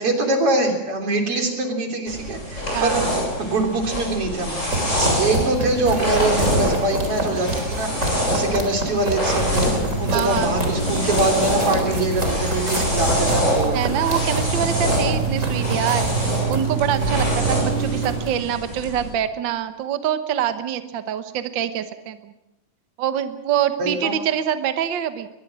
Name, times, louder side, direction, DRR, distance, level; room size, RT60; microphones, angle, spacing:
voice 1, 0.0-3.0 3.4-4.6 4.9-9.7 10.0-13.8 23.8-24.1, right 2 dB, 45° right, 3 dB, 4.3 m, -23 dB
sound 1, 2.1-19.1, equal, 20° left, 7.5 m, -26 dB
voice 2, 2.7-3.1 8.3-8.5 10.1-10.6 13.7-22.3 23.0-25.3, right 9 dB, 70° right, 10 dB, 1.1 m, -25 dB
sound 2, 4.6-18.3, right 3 dB, 25° right, 4.1 m, -26 dB
22.5 x 21.0 x 6.2 m, 0.93 s
omnidirectional pair, 3.5 m